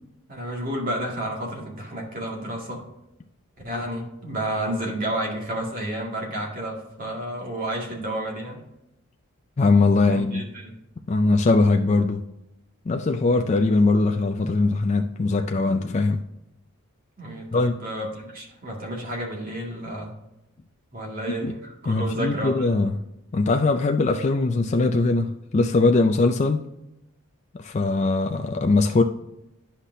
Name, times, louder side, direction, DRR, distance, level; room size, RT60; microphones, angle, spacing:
voice 1, 0.3-2.8 3.6-8.6 10.1-10.7 17.2-20.1 20.9-22.7 28.3-28.4, right 1 dB, 40° right, 2.0 m, -31 dB
voice 2, 9.6-10.4 11.1-12.2 12.9-16.2 17.5-17.8 21.4-21.6 21.9-23.0 23.3-26.6 27.6-29.0, left 3 dB, 35° left, 0.4 m, -21 dB
9.9 x 5.8 x 2.7 m
head